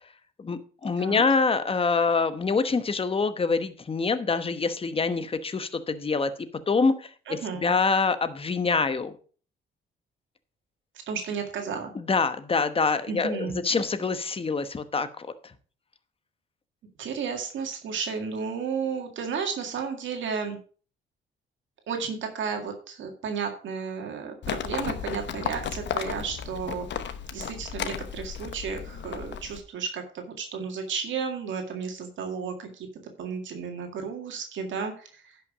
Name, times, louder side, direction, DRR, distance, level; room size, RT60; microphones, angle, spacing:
voice 1, 0.4-6.3 6.7-9.1 11.9-15.3, left 4 dB, 30° left, 11 dB, 1.0 m, -25 dB
voice 2, 7.3-7.8 11.1-11.9 13.1-13.6 17.0-20.6 21.9-27.0 27.3-32.9 33.2-35.4, right 6 dB, 70° right, 4 dB, 2.0 m, -33 dB
Livestock farm animals working animals, 24.4-29.6, left 8 dB, 65° left, 1.0 m, -34 dB
10.5 x 5.9 x 4.9 m, 0.41 s
cardioid pair, 90°, 20 cm